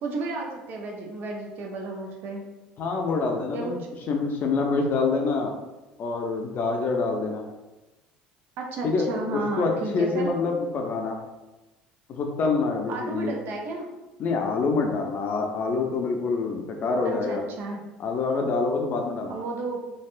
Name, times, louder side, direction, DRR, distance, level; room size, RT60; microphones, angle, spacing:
voice 1, 0.0-2.4 3.5-3.8 8.6-10.3 12.9-13.9 17.0-17.8 19.3-19.8, right 3 dB, 60° right, 0 dB, 0.6 m, -32 dB
voice 2, 2.8-5.6 6.0-7.4 8.8-11.2 12.1-13.3 14.2-17.4 18.0-19.4, left 4 dB, 50° left, 2 dB, 0.5 m, -26 dB
3.3 x 2.3 x 2.4 m, 1.1 s
hypercardioid pair, 70°, 4 cm